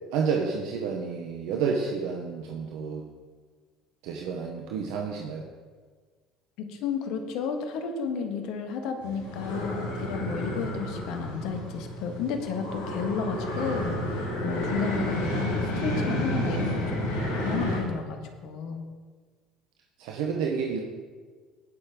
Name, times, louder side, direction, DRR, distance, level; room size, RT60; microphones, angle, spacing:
voice 1, 0.1-3.1 4.0-5.5 20.0-20.8, right 5 dB, 70° right, 1 dB, 1.0 m, -30 dB
voice 2, 6.7-18.8, left 6 dB, 65° left, 5 dB, 1.5 m, -32 dB
sound 1, 9.0-17.8, equal, 85° left, 3.7 m, -31 dB
18.0 x 6.6 x 3.8 m, 1.5 s
hypercardioid pair, 65°, 0 cm